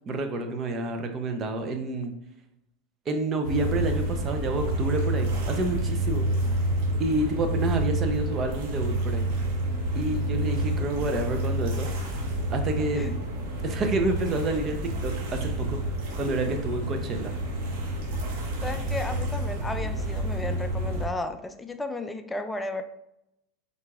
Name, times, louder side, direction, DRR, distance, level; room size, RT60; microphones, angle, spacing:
voice 1, 0.1-2.1 3.1-6.3 7.0-9.2 9.9-11.9 12.5-13.1 13.6-15.8 16.2-17.3, right 2 dB, 35° right, 5 dB, 0.8 m, -29 dB
sound 1, 3.4-21.1, right 1 dB, 60° right, 1.4 m, -29 dB
voice 2, 18.6-22.8, left 2 dB, 10° left, 8 dB, 0.4 m, -34 dB
4.5 x 4.0 x 2.5 m, 0.83 s
hypercardioid pair, 105°, 0 cm